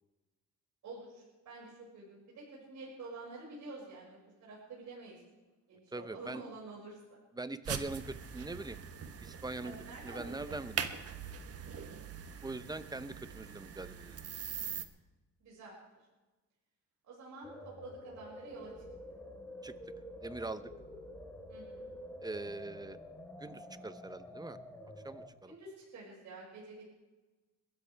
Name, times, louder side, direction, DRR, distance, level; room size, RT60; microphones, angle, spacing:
voice 1, 0.8-5.2 5.7-7.2 9.6-10.6 15.4-15.7 17.0-18.7 21.5-21.9 25.4-26.8, right 3 dB, 70° right, -5 dB, 6.1 m, -49 dB
voice 2, 5.9-6.4 7.4-8.8 9.2-9.7 10.0-10.8 12.4-14.2 19.6-19.7 20.2-20.7 22.2-23.0 23.4-24.6 25.0-25.5, right 2 dB, 15° right, 13 dB, 0.8 m, -42 dB
sound 1, 7.7-14.9, right 7 dB, 50° right, 1.2 m, -42 dB
sound 2, 17.4-25.3, equal, 5° left, 4.2 m, -48 dB
22.0 x 13.5 x 3.5 m, 1.2 s
cardioid pair, 90°, 30 cm